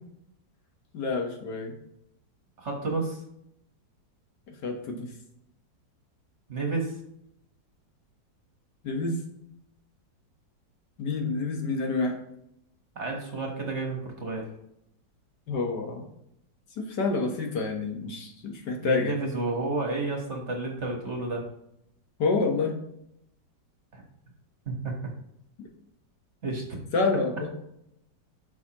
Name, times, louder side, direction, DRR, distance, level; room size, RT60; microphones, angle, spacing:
voice 1, 0.9-1.8 4.5-5.1 8.8-9.2 11.0-12.2 15.5-16.0 16.8-19.2 22.2-22.7 26.9-27.5, left 3 dB, 65° left, 2 dB, 1.7 m, -28 dB
voice 2, 2.6-3.2 6.5-7.0 12.9-14.5 18.8-21.4 23.9-24.0 24.7-24.9 26.4-26.6, right 3 dB, 40° right, 1 dB, 1.4 m, -31 dB
11.5 x 5.2 x 2.9 m, 0.78 s
omnidirectional pair, 2.0 m